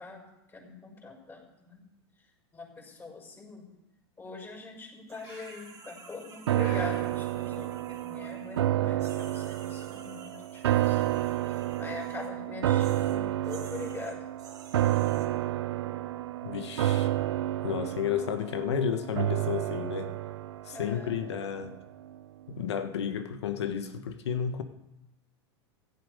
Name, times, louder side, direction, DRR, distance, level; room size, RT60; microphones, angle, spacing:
voice 1, 0.0-1.8 2.5-3.6 4.2-11.0 11.5-14.2 20.7-21.2, left 4 dB, 20° left, 6.8 m, -43 dB
sound 1, 5.1-8.6 9.0-12.3 12.8-15.3, right 5 dB, 25° right, 2.4 m, -52 dB
Breathing, 5.2-5.8 6.5-7.1, left 3 dB, 65° left, 5.3 m, -47 dB
sound 2, 6.5-21.8 22.1-22.2, right 14 dB, 85° right, 0.7 m, -30 dB
voice 2, 16.4-17.1 17.6-20.1 20.6-21.8 22.5-24.6, left 8 dB, 85° left, 1.4 m, -32 dB
16.0 x 12.0 x 5.1 m
hypercardioid pair, 115°, 14 cm